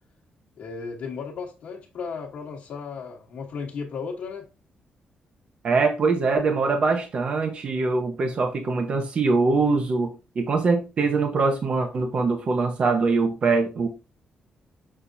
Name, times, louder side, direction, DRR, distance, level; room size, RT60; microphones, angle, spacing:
voice 1, 0.6-4.4, left 5 dB, 65° left, 1.2 m, -35 dB
voice 2, 5.6-13.9, right 4 dB, 40° right, 0.9 m, -23 dB
6.6 x 5.6 x 2.6 m
wide cardioid pair, 155°, 3 cm